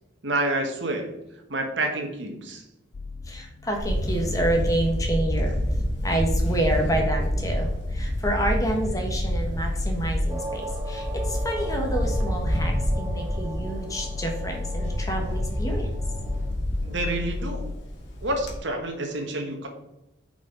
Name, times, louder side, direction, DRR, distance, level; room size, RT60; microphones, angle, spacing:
voice 1, 0.2-1.1 1.5-2.6 16.8-17.7 18.2-19.7, right 2 dB, 70° right, 3 dB, 1.5 m, -28 dB
sound 1, 2.9-17.8, left 3 dB, 40° left, 0.3 m, -35 dB
voice 2, 3.3-5.6 6.0-15.9, right 1 dB, 15° left, 1 dB, 1.3 m, -28 dB
Camera, 3.8-18.5, equal, 70° left, 1.8 m, -28 dB
sound 2, 10.3-16.5, right 1 dB, 15° right, 0.6 m, -39 dB
9.3 x 5.2 x 3.9 m, 0.91 s
head